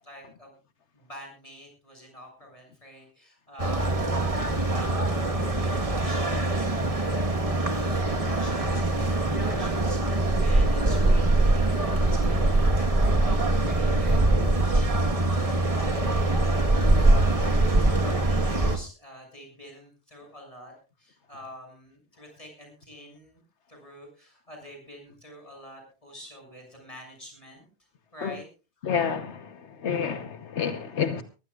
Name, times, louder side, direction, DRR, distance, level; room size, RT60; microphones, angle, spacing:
voice 1, 0.0-0.6 0.9-5.0 5.5-15.6 16.0-23.4 23.7-27.6 28.1-28.5, equal, 30° left, 2 dB, 7.0 m, -47 dB
sound 1, 3.6-18.8, right 2 dB, 30° right, 1.5 m, -23 dB
voice 2, 28.8-31.2, left 7 dB, 85° left, 8 dB, 1.4 m, -29 dB
22.5 x 15.5 x 2.4 m, 0.31 s
omnidirectional pair, 1.1 m